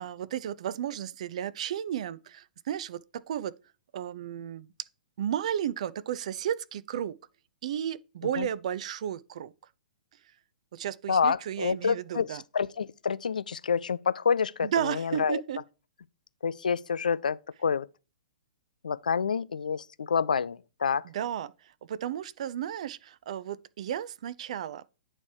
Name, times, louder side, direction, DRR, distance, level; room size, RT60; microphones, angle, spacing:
voice 1, 0.0-3.5 3.9-4.7 5.2-7.2 7.6-9.5 10.7-12.4 14.6-15.6 21.0-24.9, right 10 dB, 50° right, 0.3 m, -33 dB
voice 2, 11.1-15.4 16.4-17.9 18.8-21.1, left 6 dB, 65° left, 0.3 m, -28 dB
8.8 x 3.2 x 4.6 m
figure-of-eight pair, 115°, 5 cm